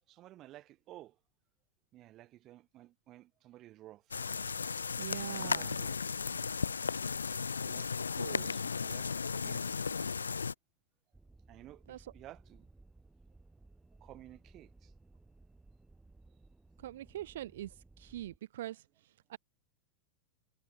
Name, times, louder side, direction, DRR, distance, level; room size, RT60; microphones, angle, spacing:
voice 1, 0.1-1.2 1.9-4.2 5.2-6.0 7.6-7.9 8.4-9.8 11.5-12.7 14.0-14.9, right 15 dB, 35° right, 3.4 m, -54 dB
sound 1, 4.1-10.5, left 5 dB, 75° left, 0.8 m, -35 dB
voice 2, 5.0-5.8 8.0-8.5 11.9-12.1 16.8-19.4, right 13 dB, 55° right, 0.6 m, -43 dB
sound 2, 11.1-18.4, right 2 dB, 10° right, 3.1 m, -60 dB
figure-of-eight pair, 90°, 0 cm